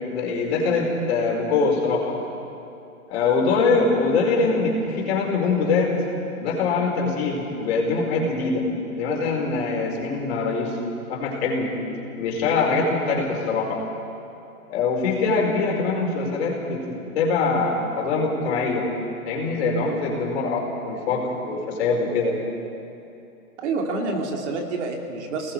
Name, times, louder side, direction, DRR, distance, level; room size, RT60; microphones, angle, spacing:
voice 1, 0.1-2.2 3.1-6.0 6.3-8.6 9.0-10.7 11.1-11.7 12.2-13.8 14.7-18.9 19.3-22.4, left 4 dB, 45° left, -1 dB, 4.8 m, -23 dB
voice 2, 23.6-25.5, right 3 dB, 50° right, 2 dB, 2.9 m, -28 dB
28.5 x 19.5 x 4.8 m, 2.8 s
hypercardioid pair, 155°, 45 cm